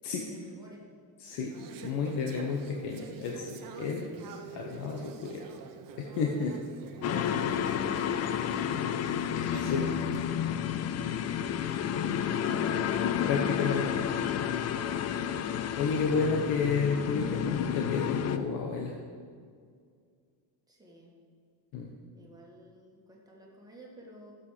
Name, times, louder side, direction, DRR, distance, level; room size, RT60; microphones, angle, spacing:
voice 1, 0.1-0.8 7.9-9.2 11.6-12.5 20.7-21.1 22.1-24.3, equal, 10° right, -3 dB, 2.1 m, -53 dB
voice 2, 1.2-1.5 1.8-4.1 4.5-5.4 6.0-6.6 7.1-7.7 9.5-9.9 13.2-14.1 15.2-15.4 15.8-18.9 21.7-21.9, left 5 dB, 60° left, 1 dB, 1.2 m, -31 dB
Conversation / Chatter, 1.3-10.2, right 6 dB, 45° right, 1.1 m, -47 dB
sound 1, 7.0-18.4, left 9 dB, 35° left, 0.5 m, -30 dB
14.0 x 7.6 x 5.0 m, 2.1 s
cardioid pair, 150°, 45 cm